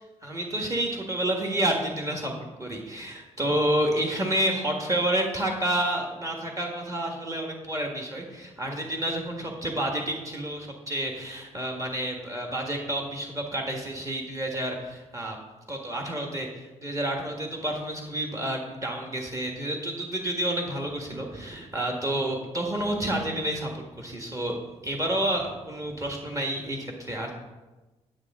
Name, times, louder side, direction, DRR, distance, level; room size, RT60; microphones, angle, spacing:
voice 1, 0.2-15.4 15.7-24.6 24.8-27.3, right 1 dB, 25° right, 1 dB, 1.6 m, -29 dB
9.7 x 8.8 x 3.6 m, 1.1 s
cardioid pair, 105°, 12 cm